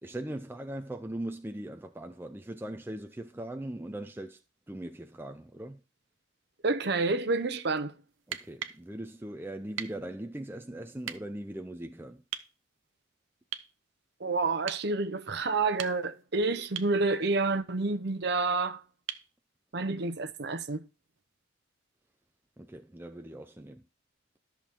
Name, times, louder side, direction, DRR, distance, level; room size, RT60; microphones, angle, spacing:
voice 1, 0.0-4.4 4.7-5.8 8.3-12.2 22.6-23.8, right 1 dB, 10° right, 0.5 m, -40 dB
voice 2, 6.6-7.9 14.2-18.8 19.7-20.8, right 3 dB, 60° right, 0.8 m, -29 dB
sound 1, 8.2-8.8 9.8-10.0 11.0-11.2 12.3-12.5 13.5-13.7 14.7-14.9 15.6-16.2 16.8-17.0 19.1-19.3 21.2-21.3, right 9 dB, 90° right, 0.8 m, -39 dB
13.0 x 6.2 x 3.7 m
head